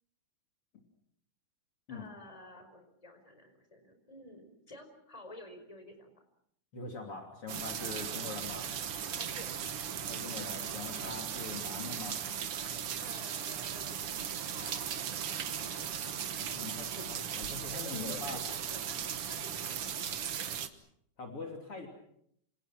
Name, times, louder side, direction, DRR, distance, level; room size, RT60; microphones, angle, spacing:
voice 1, 1.9-6.1 9.1-9.5 13.0-14.0 14.4-15.2 17.7-19.0 19.3-20.5, left 2 dB, 10° left, 7 dB, 4.8 m, -51 dB
voice 2, 6.7-8.7 10.1-12.2 16.3-18.4 21.2-21.9, left 3 dB, 45° left, 2 dB, 3.8 m, -42 dB
sound 1, 7.5-20.7, right 8 dB, 55° right, 2.0 m, -37 dB
28.0 x 27.5 x 6.1 m, 0.70 s
omnidirectional pair, 3.5 m